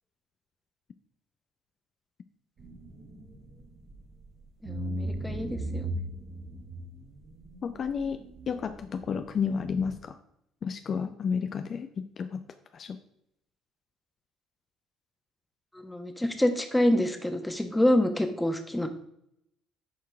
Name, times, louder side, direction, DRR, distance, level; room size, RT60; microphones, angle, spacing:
sound 1, 2.6-4.2 4.6-9.9, right 1 dB, 50° right, 2.5 m, -38 dB
voice 1, 4.6-6.0 15.8-18.9, left 1 dB, 10° left, 6 dB, 1.3 m, -27 dB
voice 2, 7.6-8.2 8.5-10.2 10.6-11.9 12.2-12.4 12.7-13.0, left 6 dB, 45° left, 9 dB, 0.5 m, -31 dB
10.0 x 4.7 x 3.5 m, 0.76 s
hypercardioid pair, 55°, 0 cm